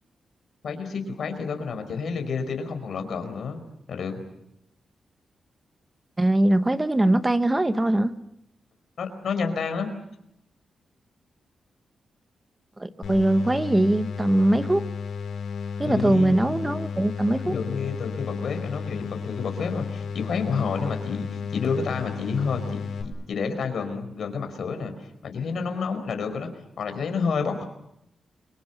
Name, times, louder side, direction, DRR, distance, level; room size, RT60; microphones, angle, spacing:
voice 1, 0.6-3.6 3.9-4.2 9.0-9.9 15.8-16.4 17.4-26.5 26.8-27.6, left 5 dB, 60° left, 7 dB, 4.8 m, -29 dB
voice 2, 6.2-8.1 12.8-14.8 15.8-17.5, right 1 dB, 15° right, 10 dB, 1.1 m, -21 dB
sound 1, 13.0-23.0, left 6 dB, 75° left, 4.9 m, -33 dB
29.5 x 24.0 x 6.9 m, 0.80 s
wide cardioid pair, 155°, 0 cm